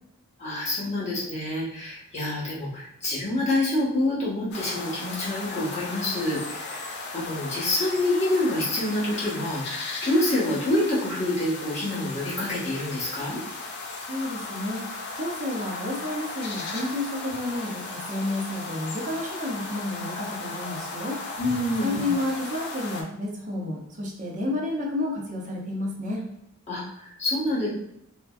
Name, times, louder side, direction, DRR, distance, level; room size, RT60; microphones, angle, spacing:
voice 1, 0.4-13.4 21.4-22.1 26.7-27.7, left 1 dB, 30° left, -8 dB, 1.1 m, -27 dB
sound 1, 4.5-23.0, left 3 dB, 50° left, 0.5 m, -36 dB
voice 2, 14.1-21.2 21.8-26.3, left 1 dB, 35° right, -1 dB, 0.6 m, -31 dB
3.4 x 2.1 x 2.4 m, 0.78 s
head